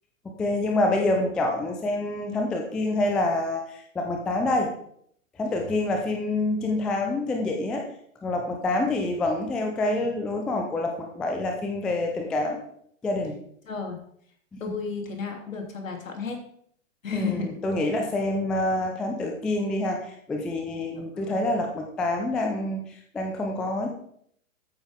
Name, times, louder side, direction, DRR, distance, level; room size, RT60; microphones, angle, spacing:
voice 1, 0.2-4.7 5.4-7.9 8.2-12.6 13.0-13.4 14.5-14.6 17.1-22.8 23.1-23.9, left 2 dB, ahead, 3 dB, 0.3 m, -27 dB
voice 2, 13.6-14.0 14.6-16.4 17.0-17.5 20.9-21.5, left 4 dB, 70° left, 3 dB, 3.1 m, -33 dB
13.5 x 9.1 x 3.6 m, 0.66 s
figure-of-eight pair, 110°, 41 cm